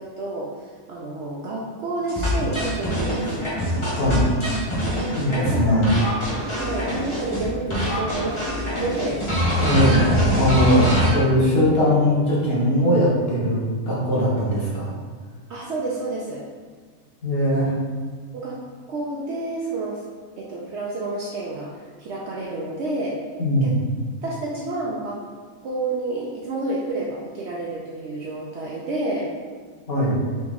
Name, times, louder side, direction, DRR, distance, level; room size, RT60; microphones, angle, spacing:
voice 1, 0.0-3.5 4.8-5.0 5.3-6.0 6.5-9.3 10.4-10.8 15.5-16.4 17.6-17.7 18.3-18.6 18.9-20.1 20.4-21.7 22.0-23.2 23.6-23.7 24.2-25.2 25.6-29.3, right 2 dB, 65° right, -4 dB, 0.7 m, -30 dB
sound 1, 2.1-7.5 7.7-11.1, equal, 25° left, 0.9 m, -24 dB
voice 2, 5.2-5.9 9.6-10.1 10.4-10.8 11.1-14.9 17.2-17.7 23.4-23.8 29.9-30.1, equal, 45° left, -7 dB, 1.2 m, -20 dB
4.0 x 2.9 x 3.6 m, 1.5 s
omnidirectional pair, 1.5 m